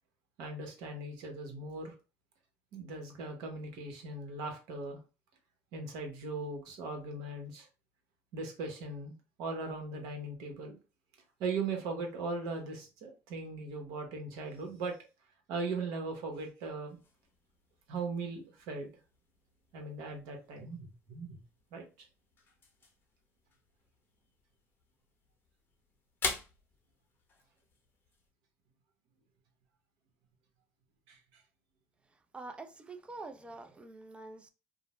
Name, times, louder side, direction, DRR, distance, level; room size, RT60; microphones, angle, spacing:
voice 1, 0.4-1.9 2.7-5.0 5.7-7.7 8.3-9.1 9.4-10.8 11.4-15.0 15.5-17.0 17.9-18.9 19.7-21.4 21.7-22.1 31.1-31.2, right 3 dB, 75° right, 0.9 m, -39 dB
sound 1, 16.9-28.3, left 4 dB, 35° left, 0.7 m, -46 dB
voice 2, 32.3-34.5, right 3 dB, 15° right, 0.4 m, -46 dB
2.5 x 2.0 x 3.0 m
cardioid pair, 115°, 7 cm